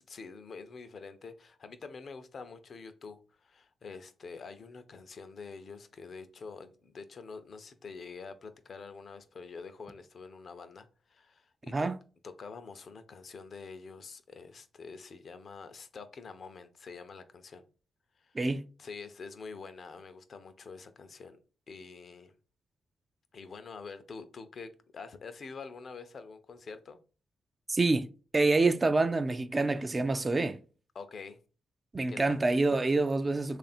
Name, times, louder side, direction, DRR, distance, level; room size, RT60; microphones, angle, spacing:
voice 1, 0.1-11.9 12.2-17.6 18.2-18.4 18.8-21.4 21.7-22.3 23.3-27.0 30.9-31.4 32.0-32.4, left 4 dB, 55° left, 0.6 m, -46 dB
voice 2, 18.3-18.7 27.7-28.1 28.3-30.6 31.9-33.6, right 3 dB, 30° right, 0.4 m, -27 dB
3.2 x 2.5 x 4.2 m
supercardioid pair, 60°, 0 cm